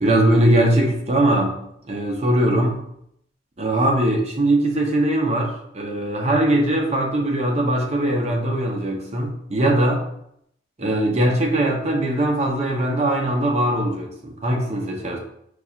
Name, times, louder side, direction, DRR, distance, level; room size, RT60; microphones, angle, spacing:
voice 1, 0.0-1.5 1.9-2.8 3.6-10.0 10.8-15.2, right 1 dB, 35° right, 0 dB, 0.6 m, -20 dB
4.6 x 2.8 x 2.4 m, 0.73 s
head